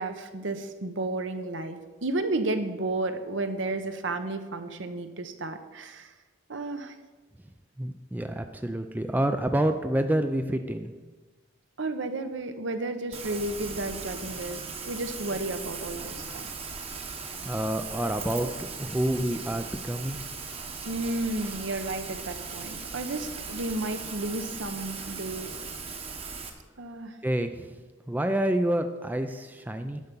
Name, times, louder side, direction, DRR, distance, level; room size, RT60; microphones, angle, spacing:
voice 1, 0.0-6.1 6.5-6.9 11.8-16.5 20.8-25.5 26.8-27.2, right 2 dB, 65° right, 8 dB, 0.9 m, -32 dB
voice 2, 7.8-10.9 17.4-20.2 27.2-27.7 28.1-30.0, right 1 dB, 10° right, 7 dB, 0.4 m, -28 dB
Rain, 13.1-26.5, right 5 dB, 30° right, 1.1 m, -38 dB
10.5 x 5.8 x 6.8 m, 1.3 s
head